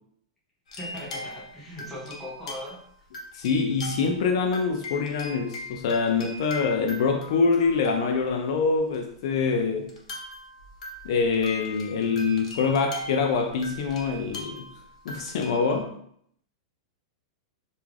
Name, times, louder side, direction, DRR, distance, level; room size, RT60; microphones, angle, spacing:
sound 1, 0.7-2.8 3.1-4.3 4.5-8.3 8.9-9.0 9.9-15.8, left 1 dB, 85° left, 0.7 m, -40 dB
voice 1, 0.8-2.8, left 1 dB, 5° left, -5 dB, 0.6 m, -39 dB
voice 2, 3.3-9.9 11.0-14.7 15.1-15.9, left 5 dB, 50° left, 4 dB, 0.3 m, -25 dB
2.3 x 2.3 x 3.2 m, 0.67 s
supercardioid pair, 170°, 3 cm